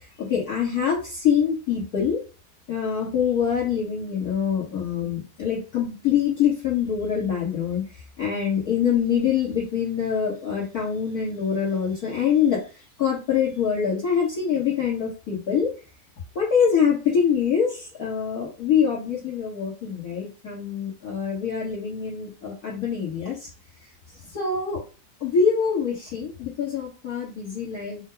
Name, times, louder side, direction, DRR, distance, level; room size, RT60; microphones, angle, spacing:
voice 1, 0.2-2.2 2.7-7.8 8.2-12.6 13.0-15.7 16.3-23.5 24.3-24.8 25.2-28.0, left 7 dB, 45° left, -6 dB, 1.6 m, -24 dB
5.6 x 2.3 x 3.8 m, 0.32 s
omnidirectional pair, 2.4 m